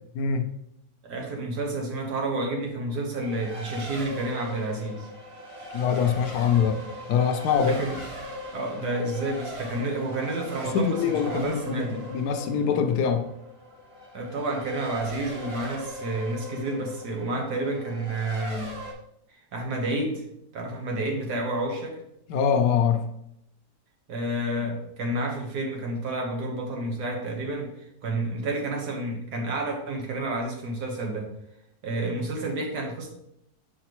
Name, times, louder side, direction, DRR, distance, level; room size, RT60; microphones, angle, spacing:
voice 1, 0.2-0.5 5.7-7.8 10.7-13.3 22.3-23.1, left 7 dB, 75° left, 6 dB, 1.1 m, -24 dB
voice 2, 1.0-5.1 7.6-8.0 8.5-12.0 14.1-18.8 19.5-20.2 20.5-22.0 24.1-31.3 31.8-33.1, right 2 dB, 85° right, 1 dB, 1.8 m, -30 dB
Race car auto racing, 3.2-18.9, left 1 dB, 25° right, 1.0 m, -39 dB
6.4 x 4.9 x 3.0 m, 0.77 s
omnidirectional pair, 1.7 m